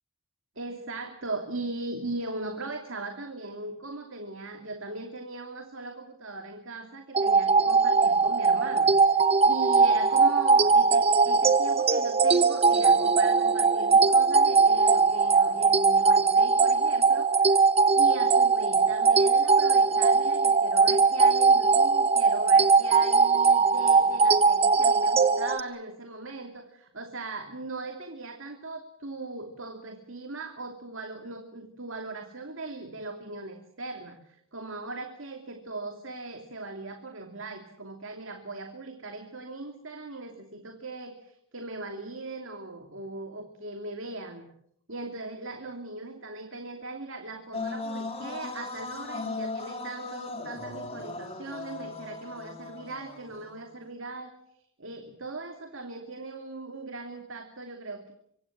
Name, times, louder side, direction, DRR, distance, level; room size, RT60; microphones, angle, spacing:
voice 1, 0.6-17.7 18.0-44.5 44.9-54.3 54.8-58.1, right 2 dB, 60° right, 5 dB, 2.7 m, -39 dB
sound 1, 7.1-25.6, right 4 dB, 30° right, 1.2 m, -21 dB
sound 2, 47.5-53.6, left 3 dB, 30° left, 3.6 m, -37 dB
25.5 x 25.0 x 7.4 m, 0.69 s
head